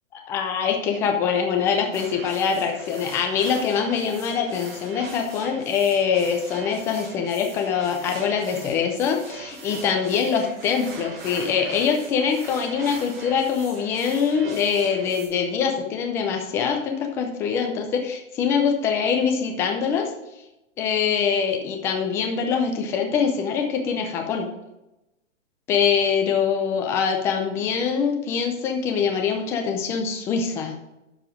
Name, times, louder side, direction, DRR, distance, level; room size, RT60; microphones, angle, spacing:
voice 1, 0.2-20.1 20.8-24.5 25.7-30.7, left 6 dB, 5° left, 3 dB, 0.4 m, -24 dB
sound 1, 1.9-15.3, right 4 dB, 25° right, 2.9 m, -41 dB
12.0 x 4.9 x 4.9 m, 0.93 s
hypercardioid pair, 140°, 39 cm